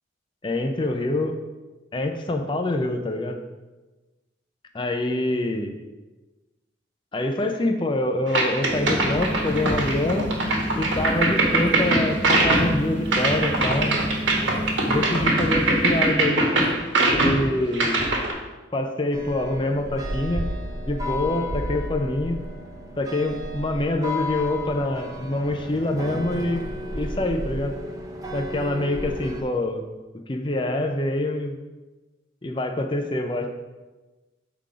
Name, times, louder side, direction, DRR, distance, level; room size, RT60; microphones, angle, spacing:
voice 1, 0.4-1.3 1.9-3.4 4.7-5.8 7.1-10.3 10.7-14.0 14.8-16.4 17.2-18.0 18.7-20.5 20.9-22.4 23.0-26.6 26.9-27.8 28.3-29.9 30.3-31.6 32.4-33.5, left 1 dB, 25° left, 4 dB, 0.5 m, -25 dB
sound 1, 8.3-18.3, right 2 dB, 70° right, 1.2 m, -22 dB
sound 2, 8.7-16.1, equal, 45° left, 0.8 m, -30 dB
sound 3, 19.1-29.4, left 1 dB, 20° right, 0.6 m, -33 dB
7.0 x 3.8 x 4.8 m, 1.2 s
head